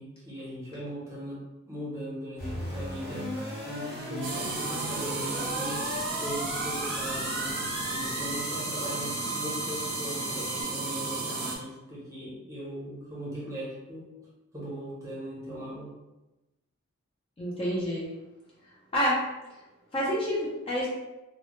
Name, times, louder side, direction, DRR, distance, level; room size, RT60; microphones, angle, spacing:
voice 1, 0.0-1.4 1.7-3.3 3.6-5.8 6.2-14.1 14.5-15.9, equal, 15° right, -7 dB, 0.7 m, -39 dB
sound 1, 2.4-10.6, left 1 dB, 45° left, 0.8 m, -37 dB
sound 2, 4.2-11.6, right 3 dB, 70° right, 0.5 m, -33 dB
voice 2, 17.4-18.1 18.9-19.2 19.9-20.9, equal, 25° left, -6 dB, 0.4 m, -28 dB
2.1 x 2.0 x 2.9 m, 1.0 s
head